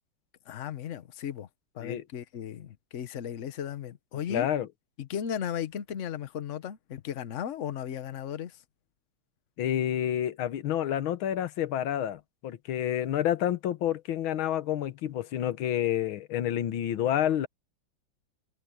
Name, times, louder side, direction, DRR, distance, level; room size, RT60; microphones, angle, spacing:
voice 1, 0.5-1.5 1.7-4.5 5.0-8.6, left 9 dB, 50° left, 1.0 m, -36 dB
voice 2, 4.3-4.7 9.6-17.5, left 11 dB, 90° left, 1.8 m, -29 dB
omnidirectional pair, 2.2 m